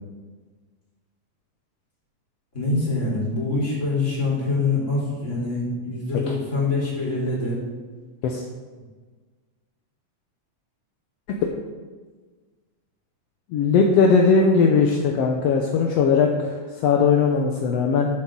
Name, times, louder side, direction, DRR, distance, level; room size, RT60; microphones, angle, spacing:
voice 1, 2.5-7.6, left 3 dB, 25° left, -5 dB, 3.6 m, -25 dB
voice 2, 13.5-18.1, left 5 dB, 70° left, 1 dB, 1.6 m, -19 dB
13.5 x 7.6 x 3.8 m, 1.4 s
omnidirectional pair, 3.5 m